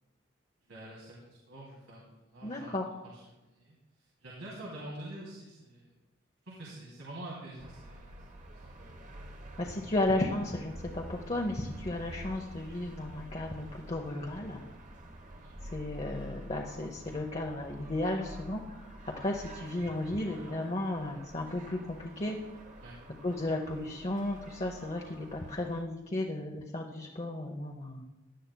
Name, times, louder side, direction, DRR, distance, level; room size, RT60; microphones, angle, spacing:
voice 1, 0.7-2.7 3.1-5.9 6.4-8.1 8.5-8.9 15.4-15.5 22.8-22.9, right 1 dB, 90° right, -5 dB, 2.7 m, -46 dB
voice 2, 2.4-2.9 9.6-14.6 15.7-22.4 23.2-28.1, left 1 dB, 30° left, 1 dB, 0.7 m, -34 dB
sound 1, 7.6-25.8, right 1 dB, 40° right, 1.0 m, -48 dB
17.0 x 11.0 x 2.2 m, 1.1 s
head